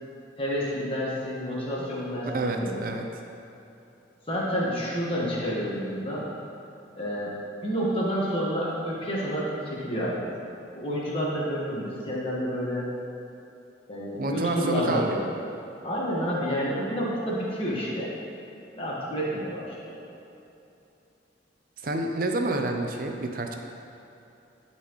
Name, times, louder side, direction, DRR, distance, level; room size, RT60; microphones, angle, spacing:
voice 1, 0.4-2.8 4.3-6.3 6.9-7.3 7.6-12.9 13.9-15.4 15.8-18.1 18.7-20.0, equal, 30° left, -6 dB, 1.4 m, -29 dB
voice 2, 2.3-3.1 14.2-15.1 21.8-23.6, right 2 dB, 50° right, 3 dB, 0.6 m, -28 dB
11.0 x 4.2 x 3.1 m, 2.9 s
head